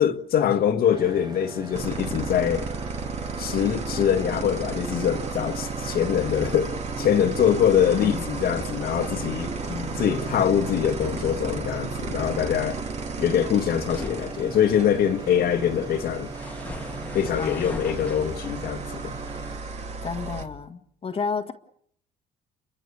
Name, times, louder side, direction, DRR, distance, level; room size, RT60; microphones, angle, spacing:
voice 1, 0.0-2.7 3.4-9.6 10.0-12.8 13.2-16.3 17.1-19.1, left 9 dB, 65° left, 1.8 m, -23 dB
sound 1, 0.9-19.6, right 5 dB, 25° right, 1.4 m, -40 dB
sound 2, 1.7-20.5, right 4 dB, 40° right, 3.5 m, -34 dB
voice 2, 7.9-8.3 9.7-10.1 15.4-15.8 17.4-17.8 20.0-21.5, left 5 dB, 35° left, 1.8 m, -32 dB
sound 3, 13.9-19.6, left 2 dB, 10° left, 1.9 m, -42 dB
29.5 x 24.0 x 6.9 m
cardioid pair, 110°, 17 cm